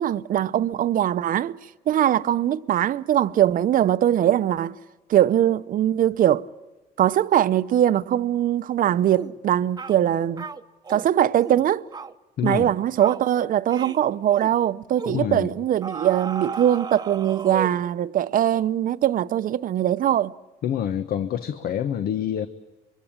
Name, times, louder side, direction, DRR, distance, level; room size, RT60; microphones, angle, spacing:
voice 1, 0.0-1.6 1.9-4.8 5.1-6.5 7.0-10.5 10.9-11.9 12.4-20.3, right 11 dB, 55° right, 0.8 m, -21 dB
sound 1, 9.2-9.4 9.8-10.0 10.4-11.1 11.4-11.6 11.9-12.1 12.4-12.7 13.0-13.3 13.7-14.0 14.3-14.6 15.0-15.2 15.8-17.9, right 5 dB, 25° right, 1.0 m, -35 dB
voice 2, 12.4-12.7 15.1-15.5 20.6-22.5, left 9 dB, 60° left, 1.2 m, -26 dB
26.0 x 23.5 x 8.7 m
cardioid pair, 110°, 17 cm